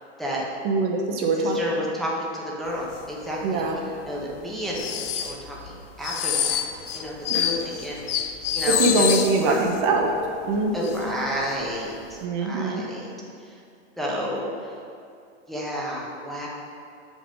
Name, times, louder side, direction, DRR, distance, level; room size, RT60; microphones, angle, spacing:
voice 1, 0.6-1.6 3.4-3.8 7.3-7.5 8.7-10.1 10.4-11.0 12.2-12.8, right 3 dB, 45° right, 1 dB, 0.8 m, -23 dB
voice 2, 1.4-6.6 6.9-9.1 9.4-9.6 10.7-13.1 13.4-13.6 14.0-14.7 15.5-16.5, equal, ahead, -5 dB, 0.9 m, -31 dB
sound 1, 2.9-3.2 3.4-3.6 4.1-9.8 10.1-10.2 10.5-11.1 11.4-11.7 12.2-12.3, left 9 dB, 85° left, 0.6 m, -27 dB
6.7 x 5.1 x 3.7 m, 2.5 s
hypercardioid pair, 125°, 35 cm